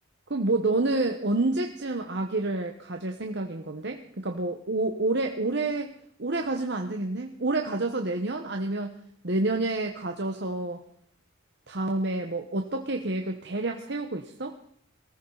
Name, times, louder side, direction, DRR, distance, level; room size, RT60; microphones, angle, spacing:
voice 1, 0.3-5.9 6.2-9.0 9.2-10.8 11.7-14.6, right 2 dB, 60° right, 4 dB, 1.1 m, -28 dB
22.5 x 15.0 x 4.0 m, 0.64 s
head